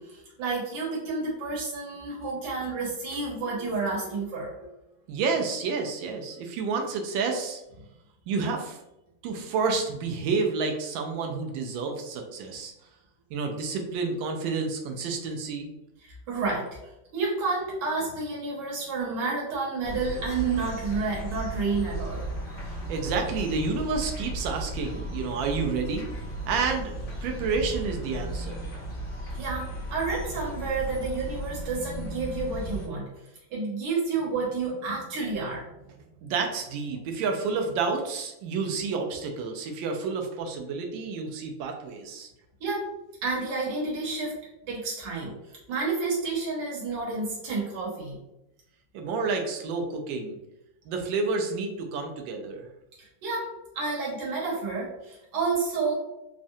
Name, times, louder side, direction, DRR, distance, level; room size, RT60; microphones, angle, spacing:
voice 1, 0.0-4.7 16.0-16.8 17.1-22.2 29.3-33.1 33.5-35.7 42.6-42.9 43.2-44.4 44.7-45.4 45.7-48.2 53.0-55.9, right 4 dB, 70° right, -5 dB, 1.6 m, -30 dB
voice 2, 5.1-7.6 8.3-8.8 9.2-12.7 13.3-15.7 22.6-26.1 26.5-26.9 27.2-28.7 36.2-42.3 48.9-50.4 50.9-52.7, right 4 dB, 85° right, 3 dB, 1.3 m, -29 dB
sound 1, 19.8-32.9, right 1 dB, 80° left, 0.5 m, -35 dB
3.6 x 2.1 x 2.6 m, 0.89 s
omnidirectional pair, 2.0 m